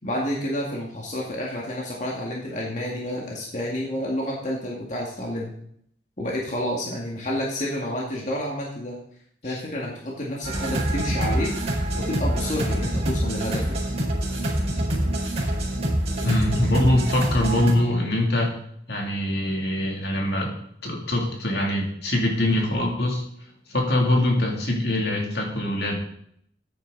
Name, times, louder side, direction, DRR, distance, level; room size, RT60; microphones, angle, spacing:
voice 1, 0.0-5.5 6.2-9.0 9.4-11.5 11.9-13.8, left 1 dB, 45° left, -3 dB, 2.2 m, -29 dB
sound 1, 10.4-17.7, right 1 dB, 35° right, 4.6 m, -25 dB
voice 2, 16.2-18.5 18.9-20.5 20.8-23.2 23.7-25.9, left 1 dB, 65° left, 0 dB, 2.9 m, -23 dB
13.5 x 9.2 x 4.1 m, 0.69 s
head